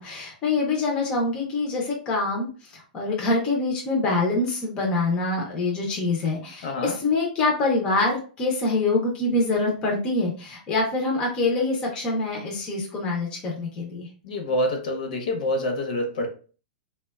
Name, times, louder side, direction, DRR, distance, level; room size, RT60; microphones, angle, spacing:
voice 1, 0.0-14.1, left 3 dB, 15° left, -1 dB, 0.4 m, -25 dB
voice 2, 6.6-6.9 14.2-16.3, left 1 dB, 60° left, 4 dB, 0.7 m, -26 dB
3.2 x 2.1 x 2.2 m, 0.38 s
supercardioid pair, 175°, 5 cm